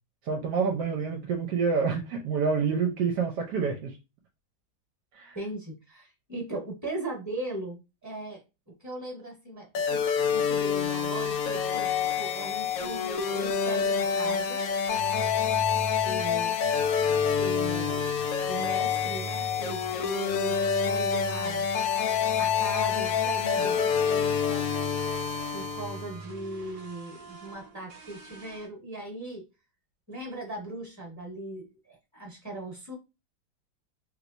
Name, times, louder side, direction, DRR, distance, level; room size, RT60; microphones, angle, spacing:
voice 1, 0.2-4.0 5.1-5.4, right 5 dB, 70° right, 1.1 m, -27 dB
voice 2, 5.3-14.6 16.0-16.6 17.4-18.1 18.5-20.6 20.8-21.7 22.4-24.7 25.5-29.4 30.1-33.0, right 2 dB, 10° right, 1.0 m, -39 dB
sound 1, 9.8-26.2, left 7 dB, 80° left, 0.7 m, -27 dB
sound 2, 14.9-26.8, right 3 dB, 50° left, 1.0 m, -41 dB
sound 3, 22.7-28.7, right 5 dB, 50° right, 1.3 m, -48 dB
3.2 x 3.1 x 2.5 m
omnidirectional pair, 2.0 m